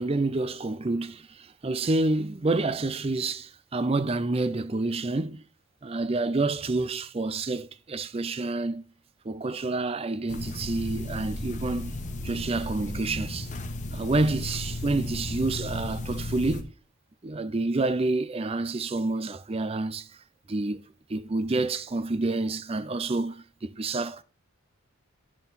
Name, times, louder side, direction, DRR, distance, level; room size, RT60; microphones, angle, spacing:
voice 1, 0.0-5.4 5.8-8.8 9.2-12.0 12.2-13.5 13.9-16.7 17.2-20.1 20.5-24.2, right 2 dB, 25° right, 0.4 m, -28 dB
sound 1, 10.3-16.6, left 1 dB, 35° left, 0.9 m, -34 dB
10.5 x 4.5 x 4.1 m
head